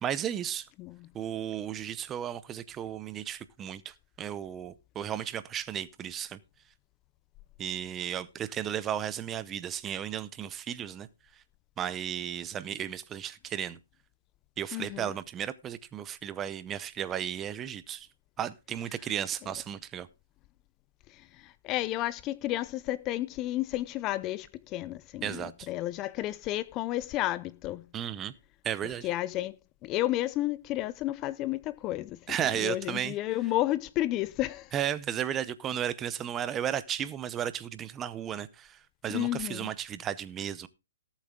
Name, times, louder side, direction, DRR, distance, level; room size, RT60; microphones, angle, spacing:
voice 1, 0.0-0.7 1.1-6.4 7.6-11.1 11.8-13.8 14.6-18.1 18.4-20.1 25.2-25.7 27.9-28.3 28.6-29.1 32.3-33.1 34.7-40.7, right 10 dB, 15° right, 0.7 m, -34 dB
voice 2, 14.7-15.1 21.1-27.8 29.0-29.6 29.8-34.7 39.1-39.7, left 15 dB, 20° left, 0.6 m, -32 dB
18.0 x 7.3 x 3.7 m
hypercardioid pair, 155°, 0 cm